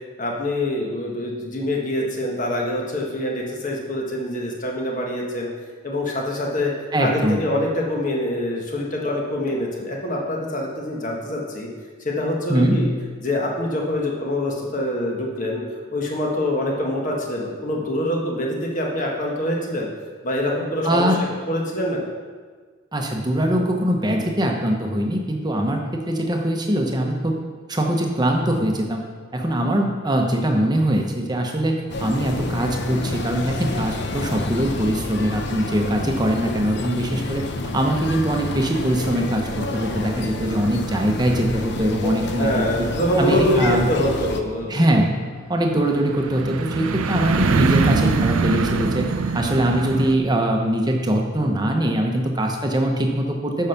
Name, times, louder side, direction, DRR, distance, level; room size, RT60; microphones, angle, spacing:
voice 1, 0.2-5.5 5.8-6.7 7.0-11.7 12.0-12.9 13.2-15.6 15.9-19.9 20.2-21.2 21.5-22.0 42.3-44.8, left 1 dB, 40° left, -1 dB, 1.4 m, -25 dB
voice 2, 6.9-7.4 12.5-12.8 20.8-21.2 22.9-27.4 27.7-29.0 29.3-42.9 43.2-43.9 44.7-45.2 45.5-53.7, right 1 dB, 20° right, 2 dB, 0.9 m, -22 dB
sound 1, 31.9-44.4, left 2 dB, 55° left, 0.7 m, -29 dB
sound 2, 44.2-50.1, right 4 dB, 85° right, 0.5 m, -23 dB
8.6 x 5.6 x 5.9 m, 1.5 s
head